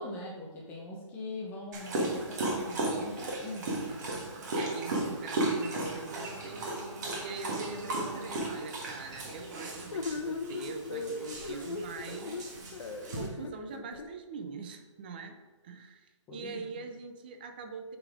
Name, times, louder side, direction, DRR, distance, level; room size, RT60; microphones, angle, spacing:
voice 1, 0.0-3.9 16.3-16.7, left 1 dB, 10° left, -3 dB, 0.7 m, -41 dB
Dog, 1.7-13.3, right 2 dB, 35° right, 1.5 m, -35 dB
voice 2, 4.5-6.8 7.2-12.6 13.2-18.0, right 4 dB, 20° right, 6 dB, 0.4 m, -43 dB
sound 1, 4.6-5.3 5.6-8.5, right 2 dB, 80° right, 1.3 m, -46 dB
sound 2, 9.9-14.1, left 3 dB, 65° left, 1.0 m, -38 dB
7.7 x 4.0 x 4.8 m, 1.2 s
hypercardioid pair, 165°, 16 cm